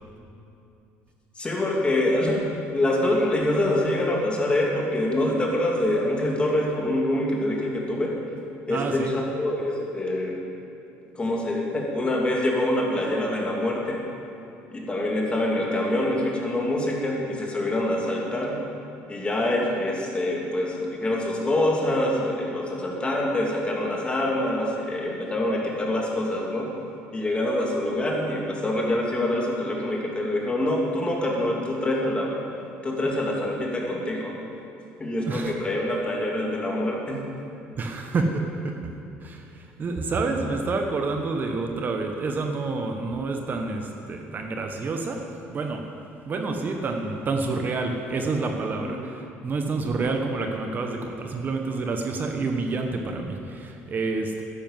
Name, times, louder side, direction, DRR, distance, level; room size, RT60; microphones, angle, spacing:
voice 1, 1.4-8.1 8.7-10.4 11.1-14.0 14.7-18.6 19.1-26.7 27.1-32.4 32.8-34.4 35.0-37.2 48.8-48.9, left 1 dB, 20° left, -1 dB, 2.8 m, -25 dB
voice 2, 8.7-9.1 35.3-35.5 37.8-38.9 39.2-45.9 46.2-54.4, right 3 dB, 40° right, 3 dB, 1.2 m, -28 dB
11.0 x 10.5 x 7.5 m, 2.7 s
cardioid pair, 100°, 5 cm